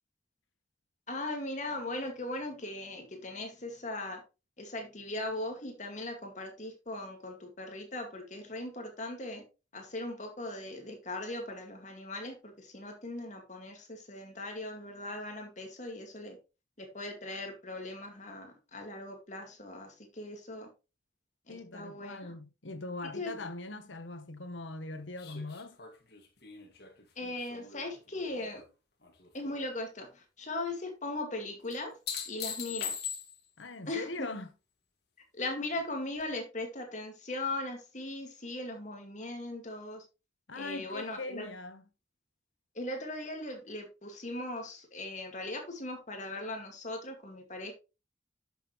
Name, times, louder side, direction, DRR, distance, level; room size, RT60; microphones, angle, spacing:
voice 1, 1.1-4.2 4.6-9.4 9.7-16.4 16.8-20.7 21.5-22.3 23.2-23.3 27.2-28.6 29.3-32.0 32.3-32.9 33.9-34.3 35.4-40.0 40.5-41.5 42.7-47.7, left 2 dB, 40° left, 2.1 m, -39 dB
voice 2, 21.5-25.8 33.6-34.5 40.5-41.8, left 2 dB, 85° left, 1.3 m, -41 dB
sound 1, 25.2-28.6 29.0-29.6 31.7-33.6 36.2-36.3, left 8 dB, 55° left, 2.2 m, -41 dB
10.5 x 6.6 x 3.2 m
head